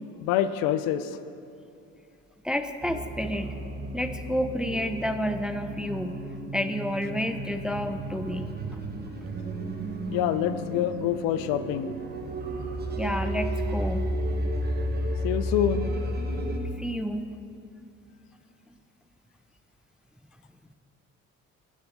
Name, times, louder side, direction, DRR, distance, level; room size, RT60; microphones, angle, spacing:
voice 1, 0.2-1.1 10.1-11.9 15.2-15.9, left 10 dB, 80° left, 13 dB, 0.5 m, -26 dB
voice 2, 2.4-3.6 3.9-6.2 6.5-8.5 13.0-14.1 16.8-17.2, equal, ahead, 9 dB, 0.4 m, -30 dB
sound 1, 2.8-16.6, right 1 dB, 30° right, 1.1 m, -33 dB
10.5 x 7.3 x 3.5 m, 2.5 s
supercardioid pair, 65°, 34 cm